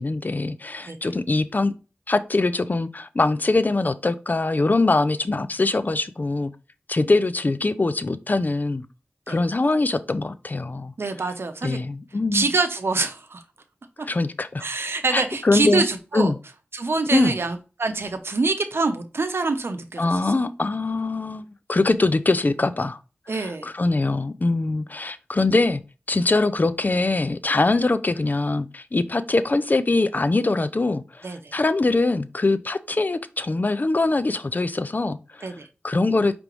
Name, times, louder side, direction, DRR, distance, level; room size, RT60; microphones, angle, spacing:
voice 1, 0.0-1.7 2.1-6.5 6.9-8.8 9.3-10.9 11.6-12.5 14.1-14.6 15.1-15.8 16.1-16.4 17.1-17.3 20.0-23.0 23.4-25.8 26.1-35.5 35.8-36.4, left 3 dB, 45° left, 0.5 m, -23 dB
voice 2, 11.0-11.8 12.3-13.4 14.0-14.1 14.6-16.3 16.7-20.3 23.3-23.7 31.2-31.6 35.4-35.7, right 3 dB, 75° right, 0.7 m, -25 dB
5.0 x 3.4 x 3.0 m
wide cardioid pair, 45°, 4 cm